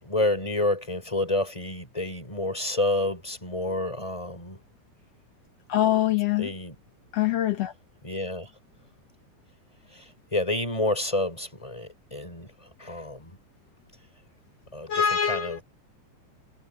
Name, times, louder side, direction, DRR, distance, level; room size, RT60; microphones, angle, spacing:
voice 1, 0.0-4.6 6.4-6.8 8.0-8.5 9.9-12.5 12.8-13.4 14.7-15.6, left 2 dB, 5° left, 5.6 m, -29 dB
voice 2, 5.7-6.5 7.1-7.7 14.9-15.6, left 10 dB, 80° left, 1.4 m, -24 dB
omnidirectional pair, 5.2 m